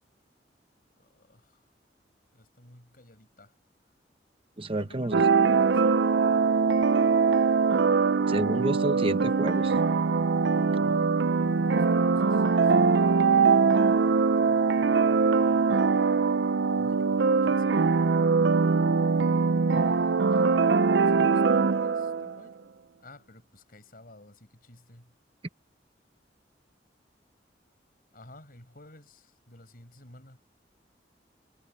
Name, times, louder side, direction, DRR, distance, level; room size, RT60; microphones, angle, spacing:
voice 1, 1.0-1.7 2.3-3.5 4.7-6.7 10.7-15.7 16.7-17.8 20.3-20.5 21.1-22.7 23.0-25.1 28.1-30.4, left 1 dB, 55° left, 5.4 m, -53 dB
voice 2, 4.6-5.2 8.3-9.7, right 1 dB, 30° right, 0.9 m, -29 dB
sound 1, 5.1-22.4, right 5 dB, 85° right, 0.5 m, -22 dB
head